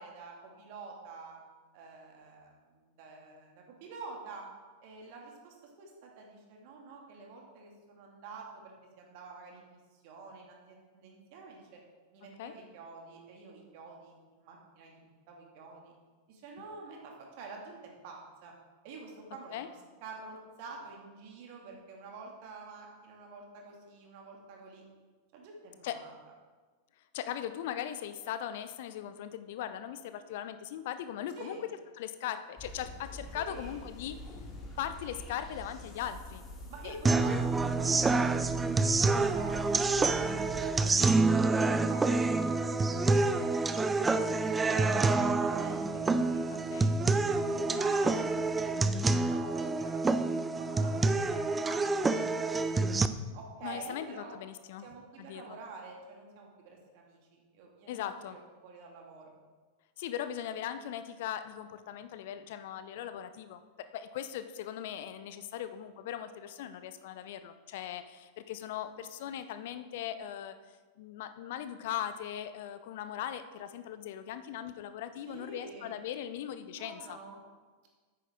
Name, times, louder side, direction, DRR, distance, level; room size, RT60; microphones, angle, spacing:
voice 1, 0.0-1.4 1.7-4.5 4.8-11.8 12.1-15.9 16.3-18.5 18.8-19.7 20.0-24.9 25.3-26.1 31.3-31.6 33.3-33.8 36.7-39.0 39.3-41.3 41.6-43.7 44.2-48.2 48.5-51.1 51.5-54.3 54.8-59.3 75.3-76.0 76.7-77.4, right 4 dB, 45° right, 0 dB, 2.3 m, -48 dB
voice 2, 27.1-31.7 32.0-34.2 34.8-36.4 36.8-37.5 46.5-46.9 53.6-54.9 55.2-55.6 57.9-58.4 60.0-63.6 63.9-70.6 71.0-77.2, left 10 dB, 50° left, 11 dB, 0.5 m, -39 dB
sound 1, 32.6-41.0, left 1 dB, 25° left, 2.5 m, -46 dB
sound 2, 37.1-53.1, right 3 dB, 15° right, 0.4 m, -27 dB
10.0 x 9.1 x 3.7 m, 1.4 s
figure-of-eight pair, 90°, 0 cm